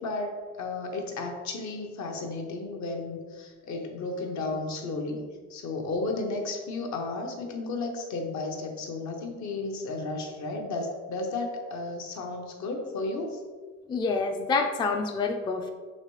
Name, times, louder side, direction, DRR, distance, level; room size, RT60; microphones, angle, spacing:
voice 1, 0.0-5.2 5.5-13.4, left 3 dB, 65° left, 2 dB, 0.8 m, -33 dB
voice 2, 13.9-15.7, left 4 dB, 15° left, 3 dB, 0.3 m, -27 dB
4.1 x 3.2 x 3.1 m, 1.5 s
cardioid pair, 90°, 30 cm